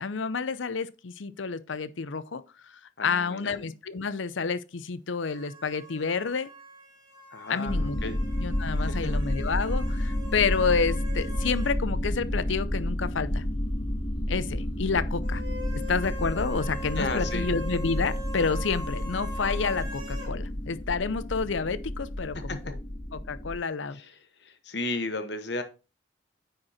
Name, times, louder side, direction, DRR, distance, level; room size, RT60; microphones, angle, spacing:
voice 1, 0.0-6.5 7.5-8.1 8.4-13.4 14.3-15.4 15.7-22.8 23.1-24.0, left 5 dB, 80° left, 0.6 m, -29 dB
voice 2, 3.0-3.6 7.3-8.2 8.8-9.1 17.0-17.5 22.5-22.6 23.9-24.1 24.4-25.6, left 2 dB, 60° left, 1.3 m, -34 dB
sound 1, 5.2-11.8 12.1-12.2 15.2-20.3, right 1 dB, 20° right, 2.5 m, -42 dB
sound 2, 7.6-23.5, left 1 dB, 20° left, 1.5 m, -30 dB
9.7 x 4.6 x 4.3 m
head